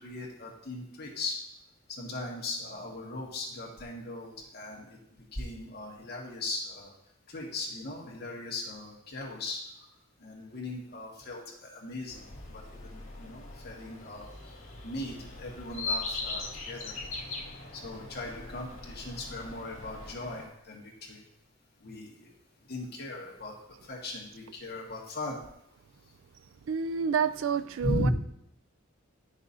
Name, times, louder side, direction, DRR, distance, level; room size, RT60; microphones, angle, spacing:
voice 1, 0.0-1.4 1.9-4.9 5.3-6.9 7.3-9.6 10.2-14.3 14.8-17.0 17.7-21.2 21.8-22.3 22.7-23.5 23.8-25.4 27.8-28.1, left 2 dB, 55° left, -2 dB, 1.7 m, -38 dB
sound 1, 12.1-20.5, left 3 dB, 80° left, 2.1 m, -40 dB
voice 2, 26.7-28.1, right 6 dB, 70° right, 13 dB, 0.4 m, -29 dB
9.9 x 6.1 x 2.7 m, 0.78 s
head